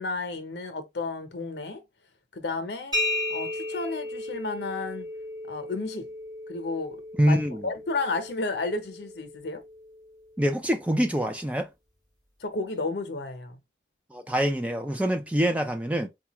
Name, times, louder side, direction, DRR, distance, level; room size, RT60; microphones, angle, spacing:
voice 1, 0.0-1.8 2.3-3.0 3.3-5.1 5.5-6.1 6.5-9.6 12.4-13.6, left 3 dB, 80° left, 0.8 m, -32 dB
sound 1, 2.9-10.5, left 1 dB, 25° right, 2.0 m, -35 dB
voice 2, 7.2-7.7 10.4-11.7 14.1-16.1, equal, 10° right, 0.4 m, -25 dB
4.1 x 2.4 x 2.9 m
head